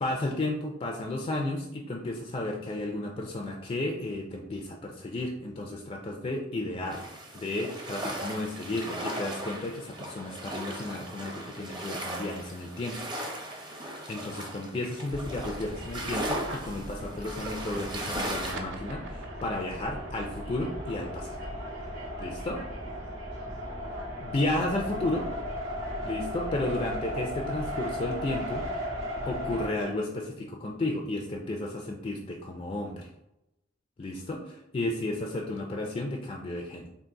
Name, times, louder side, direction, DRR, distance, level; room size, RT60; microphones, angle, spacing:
voice 1, 0.0-7.1 7.3-13.1 14.1-21.4 22.2-22.6 24.2-25.3 26.0-28.7 29.2-33.1 34.0-36.9, left 2 dB, 30° left, 1 dB, 0.4 m, -33 dB
sound 1, 6.9-18.5, right 1 dB, 25° right, 0.6 m, -37 dB
sound 2, 15.1-29.7, equal, 85° right, 1.5 m, -36 dB
sound 3, 18.2-25.1, right 3 dB, 65° right, 0.5 m, -48 dB
3.9 x 2.5 x 3.6 m, 0.87 s
head